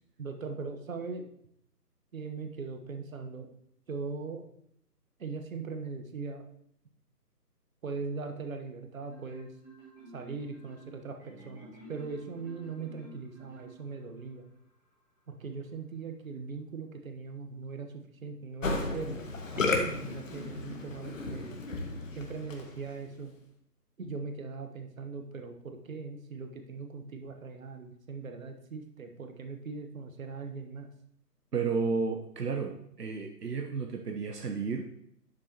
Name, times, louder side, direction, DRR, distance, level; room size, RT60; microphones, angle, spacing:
voice 1, 0.2-1.3 2.1-3.5 3.9-4.5 5.2-6.4 7.8-9.5 10.1-14.4 15.3-19.3 19.5-21.6 22.1-23.3 24.0-30.9, right 4 dB, 55° right, 5 dB, 1.3 m, -40 dB
Marimba xylophone, 9.1-14.3, right 2 dB, 5° right, 1.9 m, -51 dB
Musical instrument, 18.6-22.9, left 3 dB, 50° left, 1.4 m, -34 dB
voice 2, 31.5-34.9, right 5 dB, 70° right, 3 dB, 1.0 m, -32 dB
10.5 x 7.3 x 2.9 m, 0.72 s
figure-of-eight pair, 145°, 49 cm